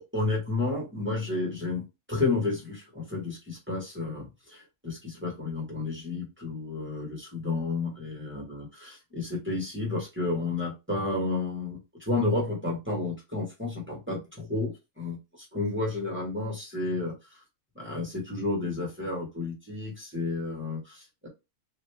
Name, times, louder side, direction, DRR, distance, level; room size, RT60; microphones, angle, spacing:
voice 1, 0.1-15.2 15.5-17.2 17.7-21.3, left 3 dB, 10° right, -3 dB, 1.3 m, -31 dB
3.1 x 2.6 x 3.3 m, 0.25 s
omnidirectional pair, 1.5 m